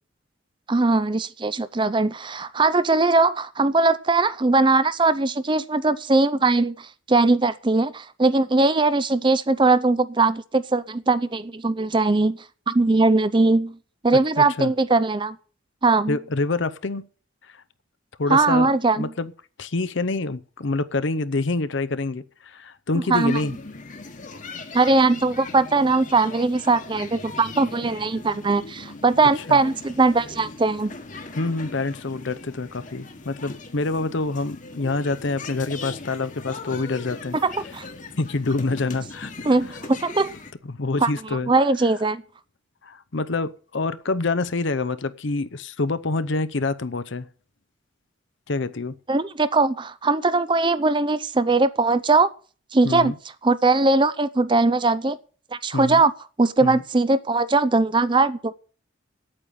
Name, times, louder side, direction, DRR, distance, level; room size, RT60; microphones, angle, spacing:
voice 1, 0.7-12.4 12.7-13.8 14.0-15.4 15.8-16.2 18.3-19.1 23.1-23.4 24.7-30.9 37.3-37.8 39.4-40.3 41.0-41.1 41.5-42.2 49.1-52.3 52.7-53.1 53.4-55.2 55.6-56.1 56.4-58.5, right 3 dB, 25° right, 0.5 m, -20 dB
voice 2, 14.4-14.7 16.1-17.0 17.5-17.6 18.2-19.3 19.6-23.5 29.4-29.6 31.4-37.4 38.2-39.3 40.6-41.5 42.8-47.3 48.5-48.9 52.8-53.1 55.7-56.0 56.6-56.8, left 3 dB, 65° left, 0.8 m, -26 dB
sound 1, 23.1-40.5, left 3 dB, 40° left, 1.4 m, -39 dB
8.8 x 8.4 x 9.0 m
head